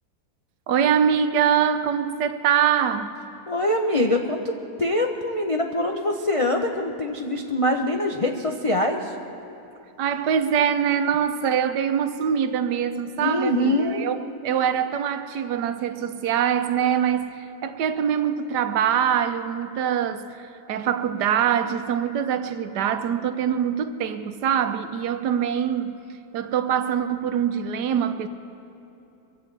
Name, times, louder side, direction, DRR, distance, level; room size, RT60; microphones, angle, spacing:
voice 1, 0.7-3.2 10.0-14.2 14.4-26.0 26.3-28.3, right 8 dB, 75° right, 9 dB, 1.3 m, -24 dB
voice 2, 3.5-9.2 13.2-14.0, left 1 dB, 50° left, 2 dB, 0.3 m, -24 dB
24.0 x 16.0 x 3.3 m, 2.8 s
omnidirectional pair, 1.8 m